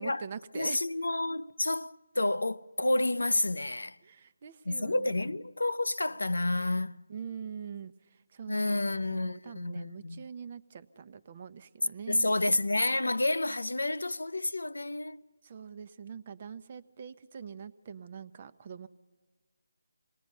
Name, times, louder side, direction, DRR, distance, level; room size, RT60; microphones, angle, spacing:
voice 1, 0.0-0.8 4.0-5.3 7.1-12.7 15.4-18.9, right 7 dB, 35° right, 0.7 m, -44 dB
voice 2, 0.5-4.0 4.7-7.0 8.5-10.2 12.1-15.2, left 2 dB, 90° left, 0.5 m, -30 dB
26.5 x 19.0 x 5.4 m
figure-of-eight pair, 160°, 0 cm